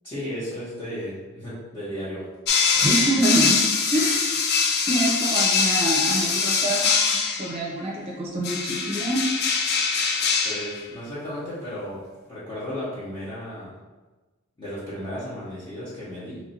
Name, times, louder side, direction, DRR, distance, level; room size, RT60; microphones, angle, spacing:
voice 1, 0.0-2.2 2.7-2.9 10.4-13.8 14.6-16.4, equal, 25° left, -12 dB, 0.9 m, -34 dB
sound 1, 2.5-7.6 8.4-10.8, left 5 dB, 50° left, 0.4 m, -23 dB
voice 2, 2.8-3.6 3.9-4.4 4.9-9.2, right 1 dB, 30° right, -3 dB, 0.5 m, -26 dB
3.1 x 2.6 x 4.1 m, 1.2 s
head